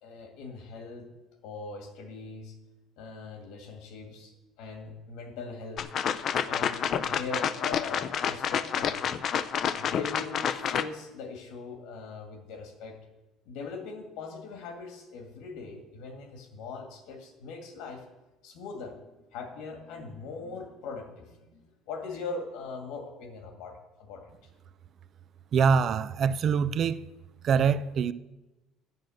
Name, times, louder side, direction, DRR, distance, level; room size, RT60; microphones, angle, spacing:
voice 1, 0.0-1.1 1.4-2.6 3.0-5.8 6.5-9.2 9.8-13.0 13.5-18.0 18.4-19.0 19.3-24.2, left 4 dB, 75° left, 1.9 m, -41 dB
sound 1, 5.8-10.8, left 8 dB, 40° left, 0.5 m, -29 dB
voice 2, 25.5-27.0 27.4-28.1, right 6 dB, 40° right, 0.4 m, -24 dB
9.3 x 7.6 x 7.8 m
cardioid pair, 155°, 0 cm